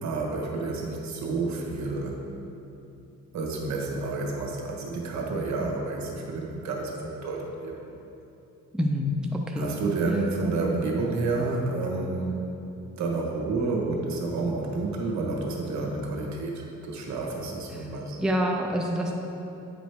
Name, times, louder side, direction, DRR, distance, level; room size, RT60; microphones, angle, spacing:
voice 1, 0.0-2.2 3.3-7.8 9.6-12.4 13.0-18.2, right 3 dB, 65° right, -1 dB, 1.3 m, -29 dB
voice 2, 8.7-9.8 17.7-17.9 18.2-19.2, equal, ahead, 1 dB, 0.6 m, -27 dB
8.8 x 5.0 x 3.4 m, 3.0 s
cardioid pair, 90°, 30 cm